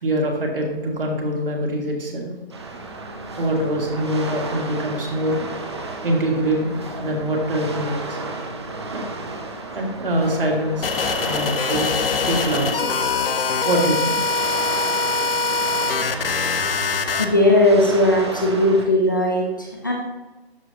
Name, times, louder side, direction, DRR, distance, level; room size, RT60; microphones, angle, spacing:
voice 1, 0.0-2.8 3.4-5.5 6.0-6.7 7.0-8.2 8.9-9.0 9.7-10.9 11.2-13.2 13.6-14.2, right 1 dB, 60° right, 0 dB, 2.2 m, -24 dB
sound 1, 2.5-18.9, right 2 dB, 25° right, 0.7 m, -33 dB
sound 2, 10.8-17.3, left 4 dB, 65° left, 0.8 m, -23 dB
voice 2, 17.2-19.9, left 1 dB, 20° left, -1 dB, 0.5 m, -18 dB
12.5 x 5.2 x 2.8 m, 1.1 s
hypercardioid pair, 165°, 31 cm